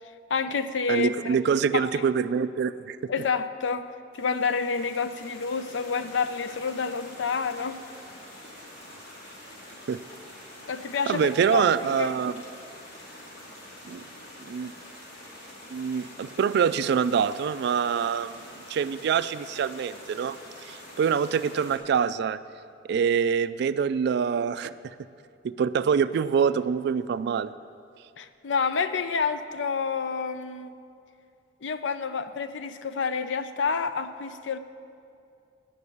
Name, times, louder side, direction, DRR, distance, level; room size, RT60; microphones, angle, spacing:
voice 1, 0.3-1.4 1.7-2.0 3.1-3.9 4.1-7.8 10.7-12.2 28.2-30.8 31.6-34.6, left 5 dB, 75° left, 11 dB, 0.5 m, -29 dB
voice 2, 0.9-3.1 9.9-10.0 11.1-12.4 13.9-14.0 14.4-14.7 15.7-18.4 18.7-20.4 20.6-22.4 22.9-24.9 25.4-27.5, right 7 dB, 60° right, 15 dB, 0.3 m, -25 dB
sound 1, 4.1-21.8, left 1 dB, 55° left, 2.7 m, -46 dB
11.0 x 5.3 x 8.4 m, 2.5 s
head